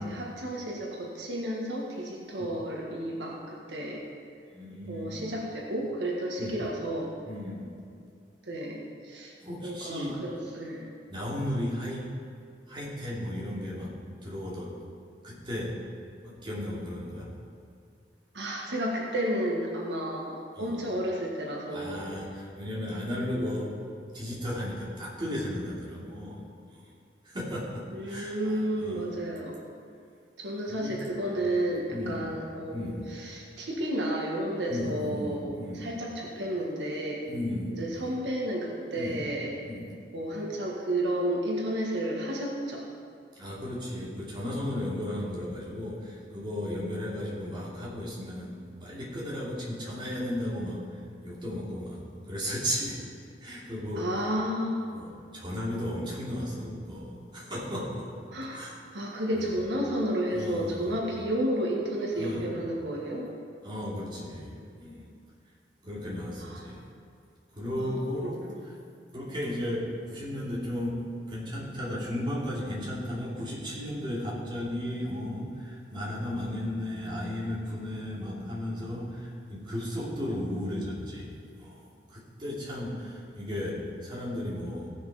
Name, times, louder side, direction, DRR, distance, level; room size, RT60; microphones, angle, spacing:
voice 1, 0.0-4.0 4.9-7.1 8.4-9.3 9.6-10.9 18.3-22.0 27.9-29.6 30.4-37.3 37.8-39.5 40.1-42.8 54.0-54.9 58.3-58.7 58.9-63.3 66.4-66.7 67.8-68.8, right 1 dB, 85° right, -2 dB, 1.8 m, -32 dB
voice 2, 4.5-5.2 6.4-6.6 7.2-7.7 9.4-10.2 11.1-12.1 12.7-14.7 15.2-15.8 16.2-17.3 20.6-20.8 21.7-23.7 24.1-26.4 26.7-26.8 27.2-29.1 30.7-31.1 31.3-31.5 31.9-32.2 32.7-33.1 34.7-35.9 37.3-37.8 38.9-39.2 39.6-39.9 43.3-50.9 51.2-53.0 53.4-54.1 54.9-58.1 58.5-58.7 59.3-59.6 60.3-60.9 62.1-62.5 63.6-65.1 65.8-66.9 67.5-68.7 69.1-84.9, left 1 dB, 30° right, -7 dB, 3.0 m, -35 dB
16.5 x 6.5 x 5.1 m, 2.3 s
head